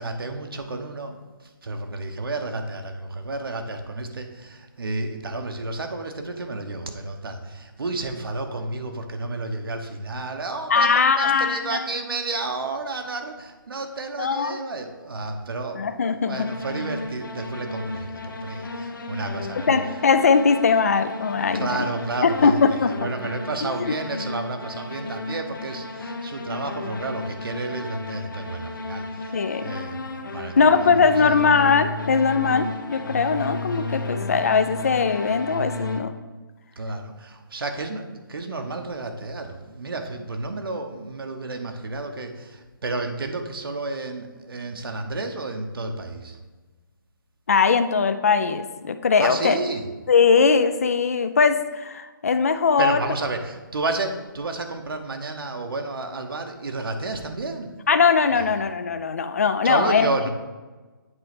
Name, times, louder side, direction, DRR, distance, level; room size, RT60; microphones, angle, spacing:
voice 1, 0.0-20.0 21.5-31.0 31.3-31.4 36.8-46.4 49.2-49.8 52.8-57.7 58.3-58.5 59.6-60.3, right 2 dB, 80° right, 5 dB, 1.1 m, -31 dB
voice 2, 10.7-11.8 14.2-14.6 15.8-16.5 19.7-21.8 22.2-22.9 23.6-24.0 29.3-29.6 30.6-36.1 47.5-49.6 50.1-53.0 57.9-60.1, left 5 dB, 40° left, 9 dB, 0.4 m, -20 dB
sound 1, 16.3-36.0, left 2 dB, 65° left, 1.0 m, -33 dB
7.8 x 3.2 x 5.9 m, 1.3 s
hypercardioid pair, 175°, 12 cm